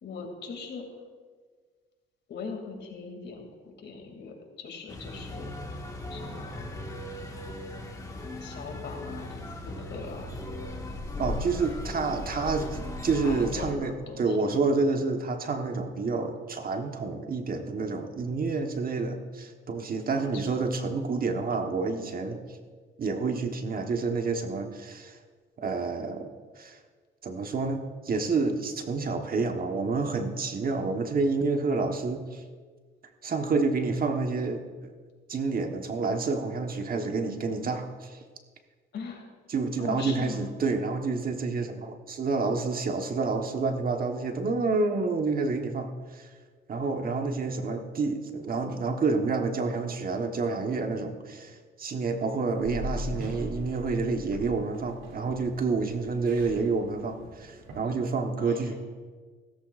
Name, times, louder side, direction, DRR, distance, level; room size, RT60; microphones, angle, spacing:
voice 1, 0.0-0.9 2.3-3.5 3.8-5.5 6.1-6.6 8.4-10.4 11.2-11.3 13.2-14.5 20.1-20.4 38.9-39.3 39.8-40.5 58.4-58.7, left 5 dB, 65° left, 2 dB, 2.7 m, -41 dB
sound 1, 4.9-13.7, left 1 dB, 15° left, 1.8 m, -37 dB
voice 2, 11.2-22.4 23.0-25.2 25.6-26.3 26.6-26.8 27.2-32.4 33.2-34.9 35.3-38.2 39.5-46.3 46.7-58.8, right 4 dB, 45° right, 5 dB, 1.3 m, -29 dB
sound 2, 52.6-57.8, equal, 85° right, 2.6 m, -40 dB
15.5 x 14.0 x 2.5 m, 1.5 s
cardioid pair, 90°, 20 cm